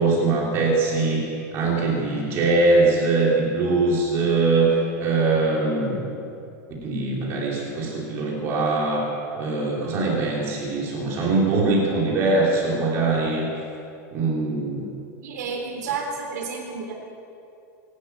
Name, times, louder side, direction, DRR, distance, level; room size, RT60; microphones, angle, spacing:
voice 1, 0.0-6.1 6.8-9.0 9.4-13.5 14.1-14.9, right 3 dB, 30° right, -3 dB, 3.0 m, -22 dB
voice 2, 15.2-16.9, right 5 dB, 85° right, 0 dB, 3.6 m, -30 dB
24.5 x 12.0 x 9.1 m, 2.7 s
supercardioid pair, 180°, 9 cm